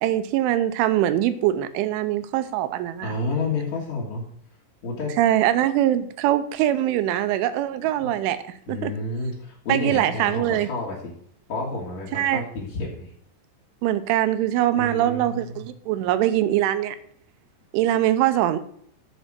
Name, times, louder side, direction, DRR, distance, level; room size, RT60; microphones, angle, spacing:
voice 1, 0.0-3.2 5.2-8.4 8.7-8.9 9.7-10.7 12.1-12.4 13.8-17.0 17.7-18.6, right 12 dB, 85° right, 11 dB, 3.1 m, -22 dB
voice 2, 3.0-4.2 4.8-5.1 8.0-8.1 8.7-11.1 11.5-13.1 14.7-15.7, left 2 dB, 50° left, -7 dB, 2.4 m, -30 dB
7.6 x 5.2 x 7.3 m, 0.65 s
omnidirectional pair, 5.4 m